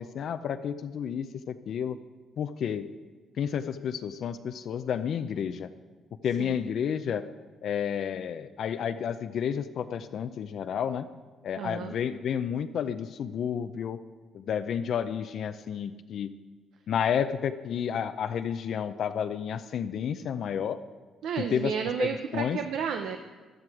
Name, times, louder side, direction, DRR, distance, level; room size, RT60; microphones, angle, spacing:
voice 1, 0.0-2.0 2.4-2.9 3.4-5.7 6.2-7.3 7.6-11.1 11.4-14.0 14.3-16.3 16.9-20.8 21.4-21.7 22.0-22.6, left 8 dB, 65° left, 9 dB, 0.5 m, -31 dB
voice 2, 11.6-12.0 21.2-23.2, right 7 dB, 80° right, 6 dB, 0.7 m, -32 dB
14.5 x 11.5 x 4.8 m, 1.4 s
cardioid pair, 90°, 0 cm